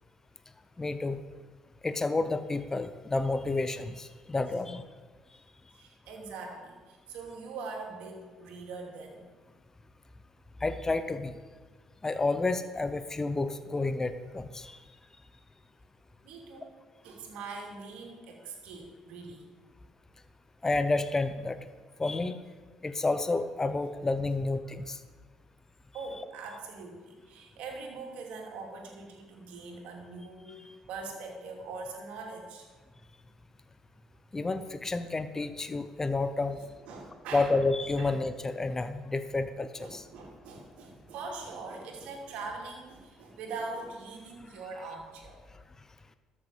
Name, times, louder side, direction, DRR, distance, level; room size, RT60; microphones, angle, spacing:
voice 1, 0.8-1.2 1.8-4.8 10.6-11.3 12.0-14.8 20.6-21.6 22.0-22.4 22.8-25.0 34.3-36.6 37.3-40.0, left 3 dB, 20° left, 10 dB, 0.8 m, -30 dB
voice 2, 5.7-9.3 16.2-16.8 17.0-19.5 25.9-32.7 36.9-37.5 38.0-38.2 39.8-45.4, right 3 dB, 65° right, 1 dB, 2.7 m, -42 dB
13.0 x 6.7 x 7.1 m, 1.4 s
hypercardioid pair, 55°, 2 cm